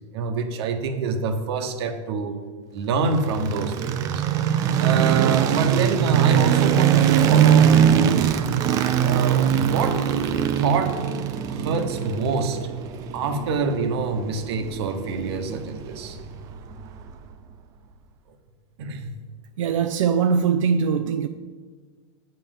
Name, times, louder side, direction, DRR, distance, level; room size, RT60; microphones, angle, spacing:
voice 1, 0.1-2.4 2.7-4.2 4.8-8.6 9.0-10.2 10.6-11.1 11.5-12.6 13.1-16.2 18.8-19.1, right 4 dB, 55° right, 7 dB, 1.1 m, -26 dB
sound 1, 3.1-17.2, right 9 dB, 20° right, 0.4 m, -22 dB
voice 2, 19.6-21.3, right 6 dB, 85° right, 9 dB, 0.5 m, -21 dB
8.1 x 5.5 x 7.3 m, 1.5 s
supercardioid pair, 165°, 16 cm